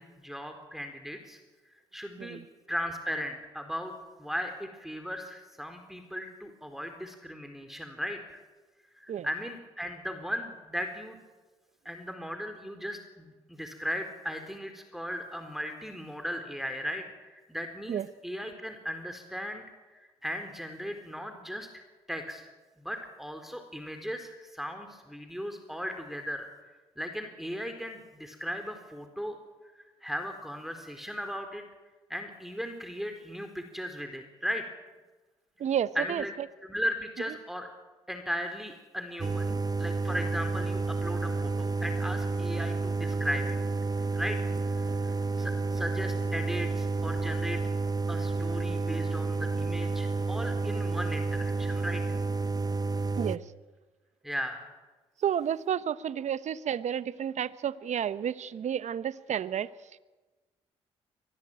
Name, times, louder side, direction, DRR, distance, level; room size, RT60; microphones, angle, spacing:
voice 1, 0.0-1.4 1.9-2.4 2.7-3.9 4.2-8.4 9.0-11.2 11.8-21.8 22.1-22.5 22.8-29.4 30.0-31.6 32.1-34.6 35.9-36.3 36.6-37.7 38.1-43.6 44.1-47.6 48.1-52.2 54.2-54.6, equal, ahead, 6 dB, 4.0 m, -37 dB
voice 2, 35.6-36.2 53.2-53.4 55.2-59.7, right 9 dB, 60° right, 16 dB, 1.1 m, -31 dB
sound 1, 39.2-53.4, right 3 dB, 30° right, 1.1 m, -30 dB
23.5 x 18.5 x 9.1 m, 1.2 s
hypercardioid pair, 50°, 13 cm